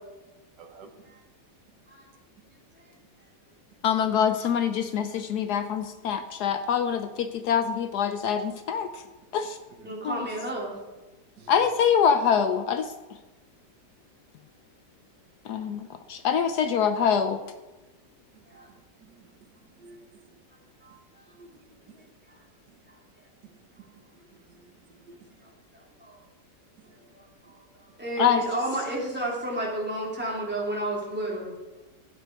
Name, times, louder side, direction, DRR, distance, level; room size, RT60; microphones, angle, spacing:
voice 1, 0.6-0.9 5.5-5.6 9.8-10.0 11.4-11.5 18.3-19.4 19.8-20.2 21.3-22.1 22.7-22.8 23.4-23.9 24.1-25.3 27.0-27.1, right 4 dB, 75° right, 5 dB, 1.7 m, -53 dB
voice 2, 3.8-9.0 9.3-9.6 10.0-10.2 11.5-12.9 15.5-17.4 28.2-28.4, left 7 dB, 70° left, 10 dB, 1.1 m, -25 dB
voice 3, 9.8-10.8 18.5-18.7 19.9-20.0 20.8-21.2 22.3-22.4 22.9-23.0 25.4-26.2 27.1-31.5, right 1 dB, 5° right, -4 dB, 3.0 m, -33 dB
12.0 x 9.1 x 4.6 m, 1.1 s
omnidirectional pair, 1.9 m